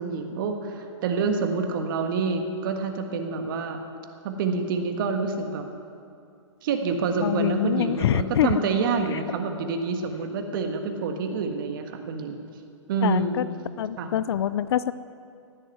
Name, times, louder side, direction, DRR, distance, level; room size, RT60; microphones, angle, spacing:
voice 1, 0.0-3.8 4.2-5.7 6.6-12.4 12.9-13.4 14.0-14.1, right 4 dB, 45° right, 5 dB, 1.6 m, -27 dB
voice 2, 7.2-8.6 9.1-9.2 13.0-13.5 13.8-14.9, left 10 dB, 55° left, 16 dB, 0.5 m, -25 dB
16.5 x 7.6 x 9.5 m, 2.4 s
hypercardioid pair, 155°, 16 cm